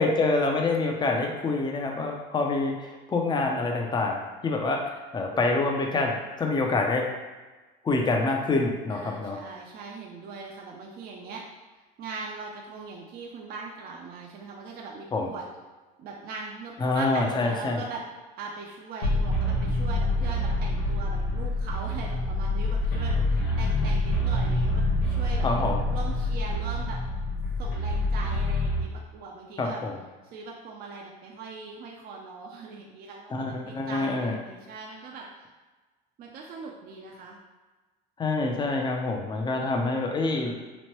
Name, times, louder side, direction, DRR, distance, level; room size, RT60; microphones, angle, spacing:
voice 1, 0.0-7.1 7.8-9.4 15.1-15.3 16.8-17.8 25.4-25.8 29.6-29.9 33.3-34.3 38.2-40.6, left 3 dB, 20° left, 1 dB, 0.5 m, -26 dB
voice 2, 8.9-11.4 11.8-15.5 16.0-18.0 18.4-25.5 25.9-27.0 27.6-29.8 30.3-35.3 36.2-37.4, right 4 dB, 45° right, -1 dB, 0.4 m, -40 dB
sound 1, 19.0-28.8, left 1 dB, 90° left, 0.7 m, -26 dB
3.0 x 2.1 x 3.0 m, 1.3 s
supercardioid pair, 95°, 21 cm